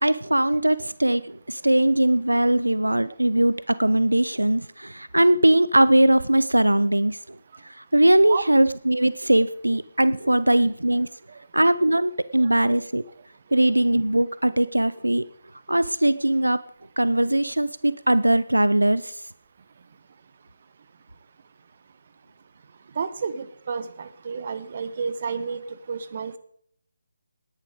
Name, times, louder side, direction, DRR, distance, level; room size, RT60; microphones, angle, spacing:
voice 1, 0.0-7.4 7.6-11.1 11.5-13.0 13.5-15.3 15.7-16.6 17.0-19.2, right 1 dB, 90° right, 16 dB, 0.6 m, -20 dB
voice 2, 23.0-25.6 25.9-26.4, right 5 dB, 45° right, 13 dB, 1.3 m, -30 dB
18.5 x 10.5 x 5.0 m, 0.65 s
figure-of-eight pair, 150°, 0 cm